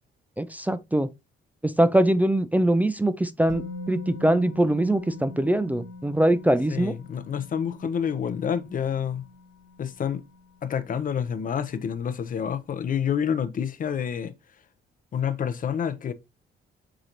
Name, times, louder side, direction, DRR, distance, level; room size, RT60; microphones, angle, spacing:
voice 1, 0.4-1.1 1.6-6.9, right 1 dB, 10° right, 0.4 m, -22 dB
Musical instrument, 3.5-11.4 11.7-11.8, left 3 dB, 85° left, 1.3 m, -42 dB
voice 2, 6.7-9.3 9.8-10.2 10.6-14.3 15.1-16.1, left 8 dB, 45° left, 0.6 m, -28 dB
4.8 x 3.8 x 2.8 m
cardioid pair, 90°, 20 cm